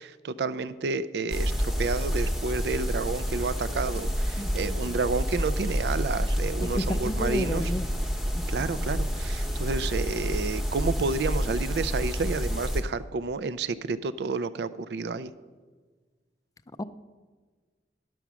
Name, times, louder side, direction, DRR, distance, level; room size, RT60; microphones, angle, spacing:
voice 1, 0.0-7.7 8.5-15.3, right 4 dB, 70° right, 14 dB, 0.4 m, -30 dB
sound 1, 1.3-12.8, equal, ahead, 0.9 m, -29 dB
voice 2, 4.4-5.0 6.6-7.9 8.3-8.7 16.8-16.9, left 1 dB, 20° left, 12 dB, 0.3 m, -32 dB
11.5 x 6.9 x 6.1 m, 1.4 s
head